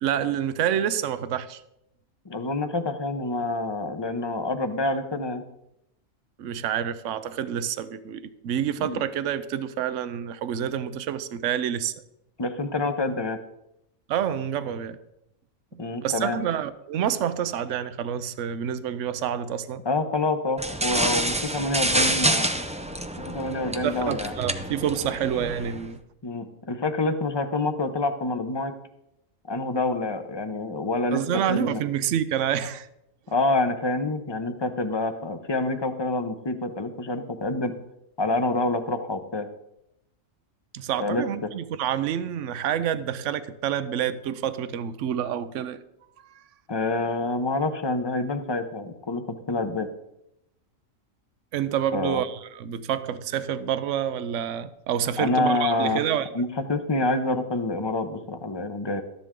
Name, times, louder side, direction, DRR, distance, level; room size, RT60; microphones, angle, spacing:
voice 1, 0.0-1.6 6.4-11.9 14.1-15.0 15.7-19.8 23.8-26.0 31.1-32.9 40.7-45.8 46.4-46.5 51.5-56.3, right 9 dB, 70° right, 1.0 m, -28 dB
voice 2, 2.3-5.4 8.8-9.0 12.4-13.4 15.8-16.4 19.8-22.5 23.2-24.3 26.2-28.7 29.5-31.2 31.5-31.8 33.3-37.7 38.2-39.5 41.0-41.2 46.7-49.9 51.9-52.2 55.2-56.0 56.3-59.0, left 2 dB, 25° left, 0.8 m, -27 dB
sound 1, 20.6-25.9, right 1 dB, 10° right, 0.3 m, -27 dB
13.5 x 10.5 x 3.7 m
omnidirectional pair, 1.4 m